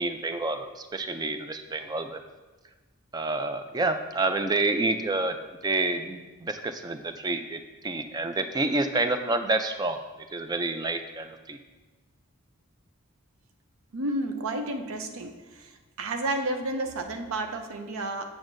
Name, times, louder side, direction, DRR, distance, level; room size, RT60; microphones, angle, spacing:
voice 1, 0.0-2.2 3.1-5.4 5.6-10.0 10.3-11.6, right 2 dB, 20° right, 8 dB, 0.3 m, -28 dB
voice 2, 13.9-15.7 16.0-18.3, right 2 dB, 75° right, 6 dB, 0.6 m, -31 dB
7.2 x 7.0 x 2.6 m, 1.2 s
head